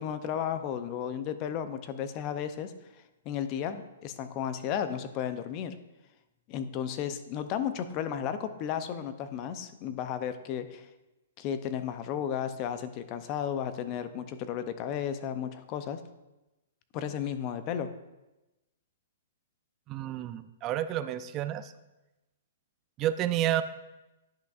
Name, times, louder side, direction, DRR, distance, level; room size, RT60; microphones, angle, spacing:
voice 1, 0.0-2.7 3.3-5.7 6.5-10.9 11.4-16.0 16.9-17.9, left 9 dB, 35° left, 11 dB, 0.5 m, -34 dB
voice 2, 19.9-21.7 23.0-23.6, right 12 dB, 30° right, 12 dB, 0.4 m, -30 dB
10.0 x 5.8 x 2.4 m, 1.0 s
hypercardioid pair, 140°, 0 cm